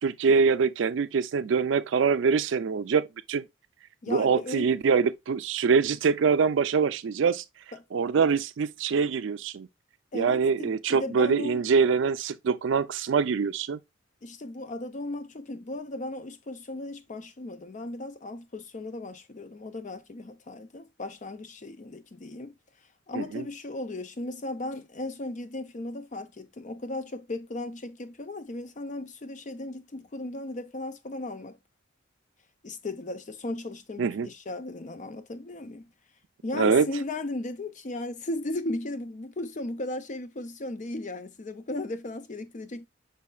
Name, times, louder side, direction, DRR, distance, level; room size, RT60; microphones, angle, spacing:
voice 1, 0.0-3.4 4.1-7.4 7.9-9.7 10.1-13.8 23.1-23.4 34.0-34.3 36.5-36.9, right 5 dB, 70° right, 0.4 m, -24 dB
voice 2, 4.0-4.6 10.1-11.6 14.2-22.5 23.1-31.6 32.6-35.8 36.4-42.9, left 2 dB, 40° left, 0.5 m, -36 dB
5.5 x 4.2 x 2.2 m
head